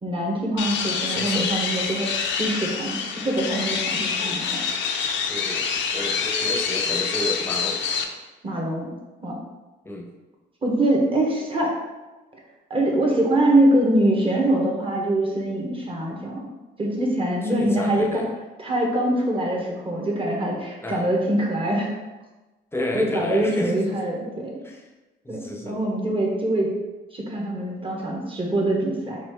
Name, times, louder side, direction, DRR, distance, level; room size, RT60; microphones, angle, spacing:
voice 1, 0.0-4.4 8.4-8.9 9.2-9.4 10.6-11.7 12.7-16.5 16.8-18.2 18.6-21.9 22.9-24.5 25.3-26.7 27.1-29.2, right 1 dB, 25° right, -2 dB, 1.2 m, -23 dB
sound 1, 0.6-8.0, left 6 dB, 70° left, 0.6 m, -26 dB
voice 2, 1.1-1.5 4.2-4.4 5.3-7.8 9.8-10.1 17.4-18.3 20.8-21.1 22.7-23.8 24.6-24.8 25.2-25.8, left 1 dB, 10° left, 1 dB, 0.8 m, -31 dB
4.3 x 2.6 x 4.5 m, 1.1 s
cardioid pair, 90°, 20 cm